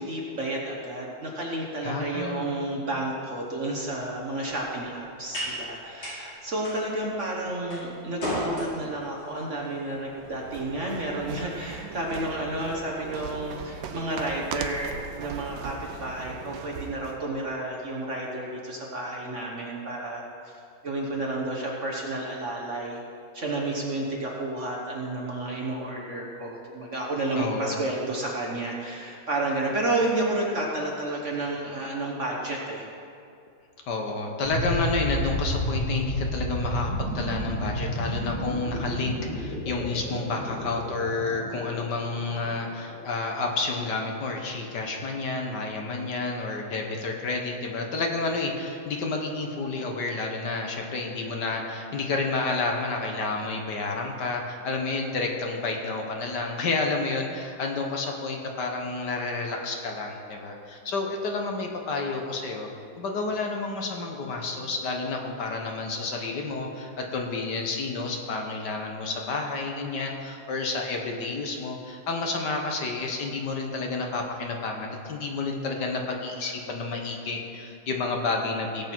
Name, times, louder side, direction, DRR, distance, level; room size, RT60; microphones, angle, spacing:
voice 1, 0.0-20.5 20.8-23.0 23.3-32.9, right 2 dB, 40° right, -2 dB, 1.4 m, -31 dB
voice 2, 1.8-2.5 27.3-27.8 33.9-62.7 63.0-78.9, left 3 dB, 60° left, 1 dB, 1.6 m, -30 dB
sound 1, 3.8-12.2, equal, 90° left, 4.8 m, -38 dB
sound 2, 10.0-17.2, right 7 dB, 75° right, 1.5 m, -39 dB
sound 3, 34.4-43.3, equal, 45° left, 3.6 m, -31 dB
17.5 x 8.1 x 4.6 m, 2.5 s
omnidirectional pair, 2.2 m